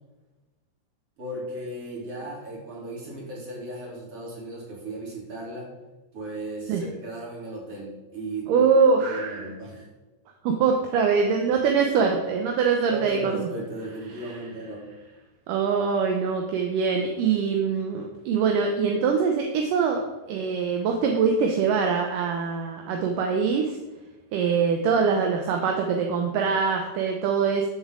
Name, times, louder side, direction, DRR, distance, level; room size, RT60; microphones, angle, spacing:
voice 1, 1.2-5.7 6.1-8.7 9.0-9.9 12.9-14.9, right 2 dB, 40° right, -5 dB, 4.1 m, -36 dB
voice 2, 8.5-9.5 10.4-13.5 15.5-23.8 24.3-27.7, right 5 dB, 75° right, 3 dB, 2.3 m, -23 dB
14.0 x 6.9 x 3.8 m, 1.1 s
omnidirectional pair, 4.2 m